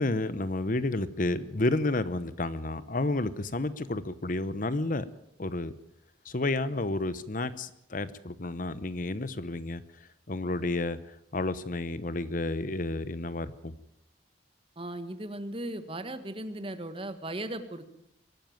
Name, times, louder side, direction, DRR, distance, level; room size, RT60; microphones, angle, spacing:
voice 1, 0.0-5.1 5.4-5.7 6.2-9.8 10.3-11.0 11.3-13.7, left 2 dB, 45° left, 14 dB, 0.9 m, -31 dB
voice 2, 14.8-17.9, right 1 dB, 30° right, 10 dB, 1.6 m, -37 dB
23.5 x 12.5 x 9.3 m, 0.77 s
head